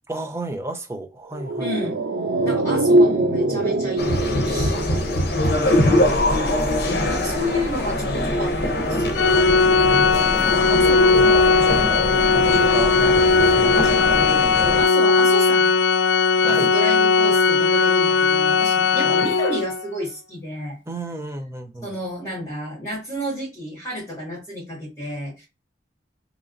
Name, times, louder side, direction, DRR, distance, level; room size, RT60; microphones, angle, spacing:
voice 1, 0.1-1.7 5.6-6.5 9.8-14.2 16.4-16.7 19.0-19.3 20.9-21.9, right 1 dB, 15° right, 0.5 m, -33 dB
sound 1, 1.3-5.8 6.1-6.2, right 1 dB, 90° right, 0.7 m, -22 dB
voice 2, 1.6-2.0 2.4-6.3 6.8-9.1 14.8-15.8 16.4-20.8 21.8-25.4, left 1 dB, 15° left, 1.8 m, -31 dB
sound 2, 4.0-14.8, left 1 dB, 60° left, 0.7 m, -23 dB
Organ, 9.1-19.9, left 4 dB, 85° left, 0.3 m, -18 dB
3.8 x 2.9 x 2.5 m
head